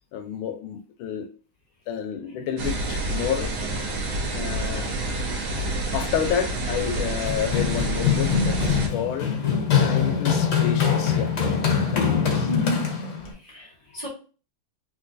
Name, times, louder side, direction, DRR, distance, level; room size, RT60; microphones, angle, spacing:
voice 1, 0.1-1.3 1.9-3.5 4.3-5.0 5.7-9.3 9.8-11.4 11.8-12.5 13.9-14.0, left 8 dB, 85° left, 1.4 m, -30 dB
sound 1, 2.6-8.9, right 2 dB, 80° right, 1.7 m, -28 dB
Run, 6.9-13.3, left 7 dB, 60° left, 0.8 m, -23 dB
voice 2, 12.5-13.0 13.4-14.1, equal, 20° right, 1.0 m, -31 dB
3.8 x 2.6 x 2.5 m
omnidirectional pair, 2.2 m